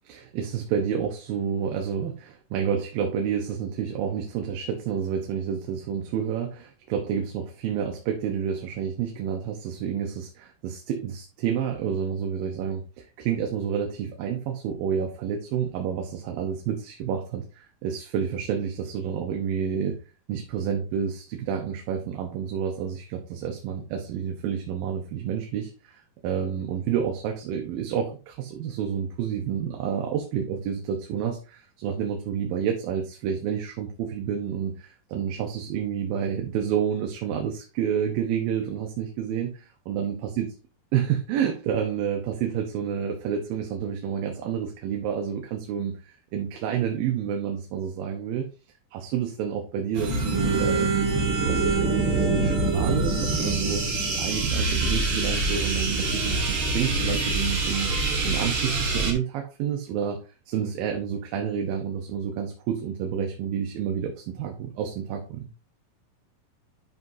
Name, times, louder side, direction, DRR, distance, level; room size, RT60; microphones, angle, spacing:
voice 1, 0.0-20.0 20.3-40.5 40.9-48.5 48.9-57.9 58.2-60.2 60.5-65.5, right 8 dB, 90° right, 2 dB, 2.7 m, -29 dB
sound 1, 50.0-59.1, right 3 dB, 45° right, 2.1 m, -25 dB
10.5 x 5.5 x 2.7 m, 0.34 s
omnidirectional pair, 4.0 m